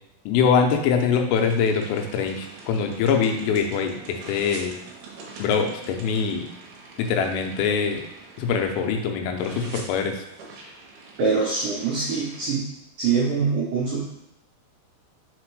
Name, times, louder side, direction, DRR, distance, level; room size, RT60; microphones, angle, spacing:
voice 1, 0.3-4.7 5.4-6.4 7.0-8.0 8.4-10.2, left 6 dB, 90° left, 4 dB, 3.4 m, -23 dB
sound 1, 1.4-9.1 9.4-12.5, right 3 dB, 70° right, 2.4 m, -44 dB
voice 2, 11.2-12.6 13.0-14.0, right 4 dB, 85° right, -6 dB, 1.9 m, -24 dB
6.6 x 4.3 x 4.7 m, 0.82 s
omnidirectional pair, 5.8 m